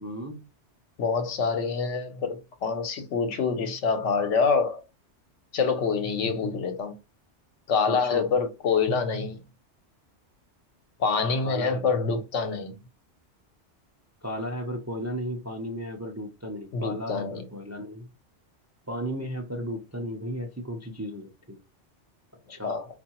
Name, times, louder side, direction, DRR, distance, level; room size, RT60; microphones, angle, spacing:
voice 1, 0.0-0.5 7.9-8.3 11.4-11.8 14.2-18.1 18.9-21.6 22.5-22.9, equal, 25° right, 0.4 m, -35 dB
voice 2, 1.0-4.8 5.5-6.9 7.7-9.4 11.0-12.8 16.7-17.4 22.6-22.8, left 5 dB, 85° left, 1.1 m, -26 dB
4.6 x 2.4 x 2.9 m
omnidirectional pair, 1.2 m